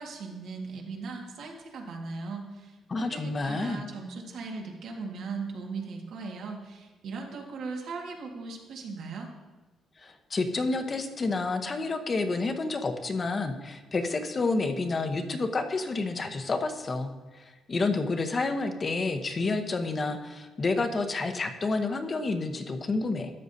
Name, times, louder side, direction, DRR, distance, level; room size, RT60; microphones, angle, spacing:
voice 1, 0.0-9.3, right 4 dB, 75° right, 0 dB, 1.7 m, -38 dB
voice 2, 2.9-3.8 10.0-23.3, left 3 dB, 35° left, 7 dB, 0.9 m, -29 dB
13.0 x 7.7 x 2.7 m, 1.2 s
cardioid pair, 90°, 0 cm